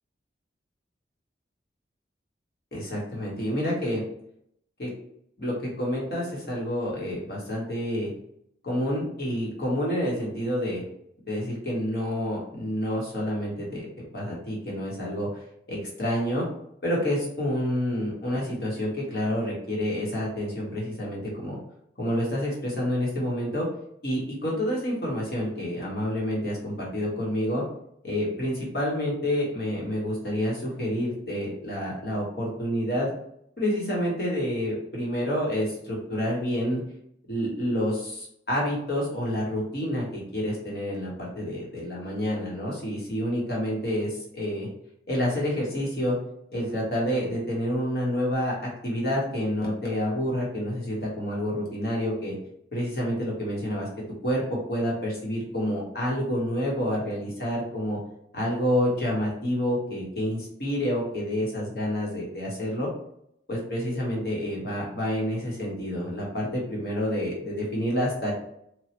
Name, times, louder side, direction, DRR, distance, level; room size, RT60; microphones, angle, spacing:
voice 1, 2.7-4.0 4.8-4.9 5.4-8.1 8.6-10.8 11.3-13.9 14.1-16.4 16.8-21.6 22.0-23.7 24.0-27.6 28.0-33.1 33.6-36.8 37.3-44.7 45.1-46.2 46.5-52.3 52.7-53.9 54.2-54.4 54.7-58.0 58.3-62.9 63.5-68.3, equal, 60° left, -3 dB, 1.2 m, -28 dB
3.1 x 2.3 x 2.9 m, 0.73 s
head